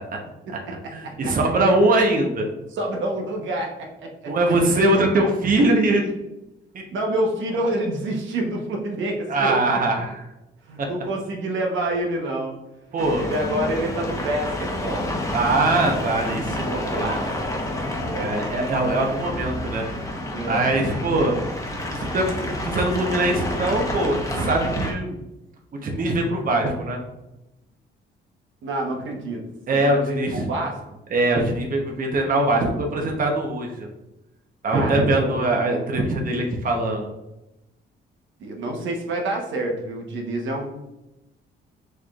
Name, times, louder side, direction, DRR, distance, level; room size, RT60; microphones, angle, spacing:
voice 1, 0.9-2.5 4.3-6.1 6.7-6.8 9.3-10.2 10.8-10.9 12.9-13.2 15.3-17.1 18.2-19.8 20.4-21.3 22.0-25.2 25.7-27.0 29.7-30.5 31.1-33.9 34.6-37.1, right 2 dB, 45° right, 1 dB, 0.9 m, -22 dB
voice 2, 2.7-4.3 6.9-9.6 10.7-12.5 13.2-15.1 15.6-16.0 16.7-17.3 18.0-18.3 20.3-20.8 28.6-29.4 29.7-30.8 34.7-35.4 38.4-40.8, right 1 dB, 75° right, 1 dB, 1.0 m, -28 dB
sound 1, 13.0-24.9, left 1 dB, 15° left, 1.0 m, -29 dB
6.4 x 3.2 x 2.4 m, 0.93 s
cardioid pair, 90°, 20 cm